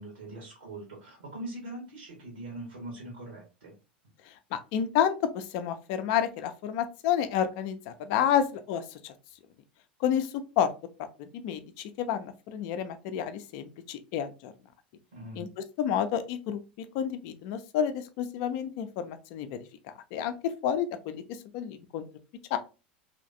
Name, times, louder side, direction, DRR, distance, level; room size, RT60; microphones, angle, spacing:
voice 1, 0.0-3.7 15.1-15.5, right 1 dB, 70° right, -2 dB, 1.2 m, -42 dB
voice 2, 4.5-9.1 10.0-10.7 11.2-14.5 15.4-15.5 15.8-16.6 16.9-19.6 20.1-21.2 21.5-22.0 22.5-22.6, left 9 dB, 45° left, 10 dB, 0.5 m, -30 dB
3.1 x 2.9 x 2.6 m, 0.30 s
figure-of-eight pair, 85°, 6 cm